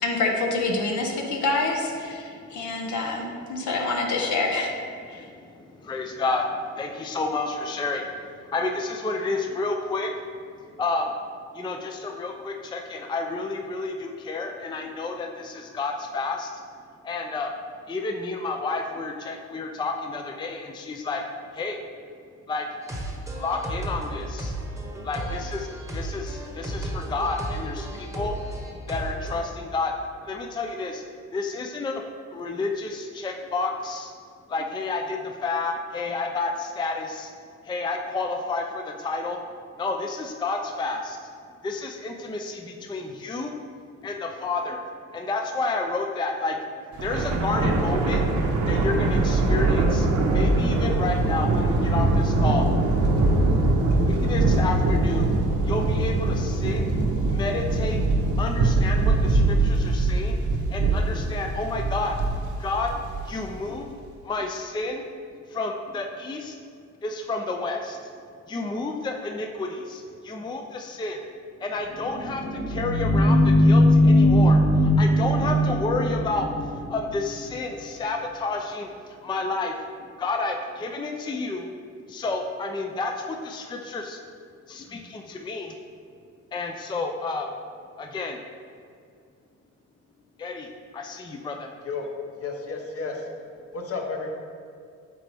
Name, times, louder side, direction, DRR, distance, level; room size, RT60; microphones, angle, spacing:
voice 1, 0.0-4.7 5.1-5.2, left 3 dB, 70° left, 1 dB, 1.0 m, -26 dB
voice 2, 5.8-6.5 6.8-8.0 8.5-10.1 10.8-11.1 11.5-16.5 17.0-17.5 17.9-21.2 21.5-21.8 22.5-22.7 23.4-24.5 25.0-25.7 25.9-28.3 28.9-29.9 30.3-31.0 31.3-32.0 32.3-34.1 34.5-37.3 37.7-39.4 39.8-41.2 41.6-43.5 44.0-44.8 45.1-46.6 47.0-48.2 48.7-50.1 50.3-52.9 53.4-53.5 54.1-55.3 55.7-56.8 57.3-58.0 58.4-60.4 60.7-62.2 62.6-62.9 63.3-63.9 64.3-65.0 65.5-66.5 67.0-68.0 68.5-71.2 71.6-72.4 72.7-74.6 75.0-76.5 76.9-78.9 79.2-79.7 80.2-81.6 82.1-84.2 84.7-85.7 86.5-87.5 88.0-88.4 90.4-90.7 90.9-91.7, left 3 dB, 15° left, 3 dB, 0.4 m, -30 dB
sound 1, 22.8-29.4, right 1 dB, 10° right, 0.9 m, -34 dB
Thunder, 46.9-63.5, right 2 dB, 75° right, 0.9 m, -22 dB
sound 2, 71.9-77.4, left 1 dB, 40° right, 0.9 m, -20 dB
voice 3, 92.4-93.3 93.7-94.3, left 4 dB, 50° left, 1 dB, 1.1 m, -32 dB
7.6 x 4.0 x 3.4 m, 2.3 s
cardioid pair, 90°, 30 cm